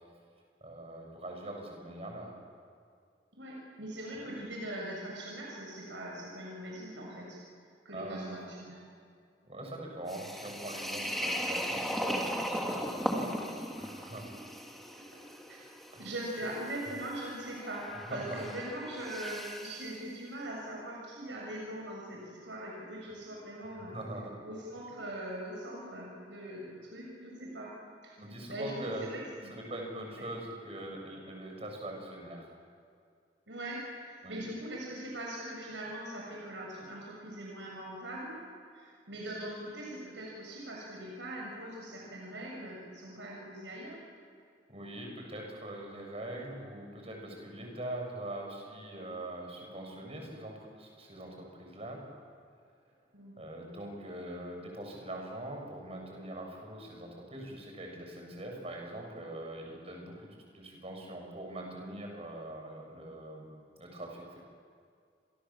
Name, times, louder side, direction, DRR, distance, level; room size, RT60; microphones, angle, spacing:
voice 1, 0.6-2.3 7.9-8.3 9.4-14.3 15.9-16.1 17.9-18.5 23.8-24.3 28.2-29.1 29.5-32.5 34.2-34.4 44.7-52.0 53.4-63.5 63.8-64.4, right 1 dB, 35° right, 1 dB, 7.4 m, -42 dB
voice 2, 3.3-7.4 7.8-8.9 13.1-13.4 15.1-15.2 15.5-15.6 16.0-23.9 24.4-27.7 28.0-28.2 28.5-29.5 30.2-30.3 33.5-38.4 38.7-44.0 53.1-53.4, right 1 dB, 85° right, -3 dB, 7.3 m, -41 dB
sound 1, 10.1-19.9, equal, ahead, 2.9 m, -37 dB
30.0 x 26.5 x 7.5 m, 2.3 s
head